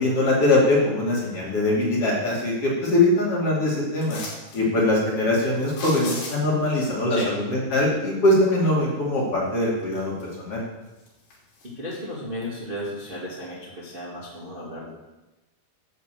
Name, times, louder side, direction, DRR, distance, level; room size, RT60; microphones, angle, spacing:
voice 1, 0.0-4.2 4.5-10.6, left 2 dB, 40° left, -4 dB, 3.1 m, -22 dB
sound 1, 4.0-4.6 5.6-6.6 9.2-9.3 9.8-10.5 10.8-12.0 12.4-12.5, left 3 dB, 75° left, 4.9 m, -37 dB
voice 2, 11.6-14.9, left 1 dB, 20° right, -6 dB, 1.7 m, -34 dB
10.0 x 6.6 x 7.6 m, 1.0 s
omnidirectional pair, 4.5 m